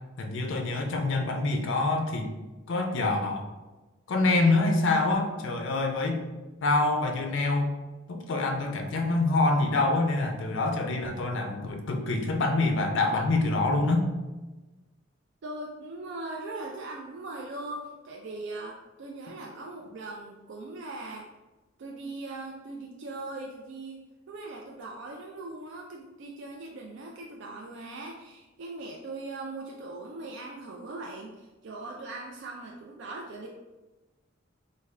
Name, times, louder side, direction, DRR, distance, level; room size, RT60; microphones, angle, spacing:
voice 1, 0.2-2.3 2.7-3.5 4.1-6.2 6.6-7.7 8.1-14.1, left 2 dB, 65° left, 4 dB, 0.5 m, -26 dB
voice 2, 15.4-21.3 21.8-24.0 24.3-33.5, right 2 dB, 60° right, -1 dB, 0.4 m, -40 dB
3.4 x 2.2 x 3.2 m, 1.2 s
head